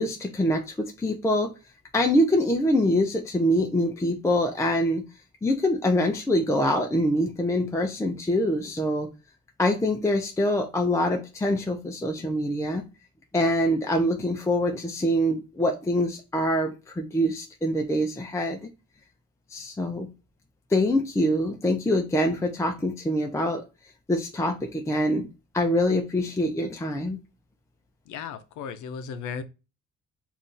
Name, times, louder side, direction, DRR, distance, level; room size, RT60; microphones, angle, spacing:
voice 1, 0.0-1.5 1.9-5.0 5.4-9.1 9.6-12.8 13.3-18.6 19.5-20.1 20.7-23.6 24.1-25.3 25.5-27.2, left 1 dB, 10° left, 0.4 m, -24 dB
voice 2, 28.1-29.4, left 6 dB, 80° left, 0.5 m, -35 dB
2.6 x 2.4 x 3.6 m
cardioid pair, 90°, 30 cm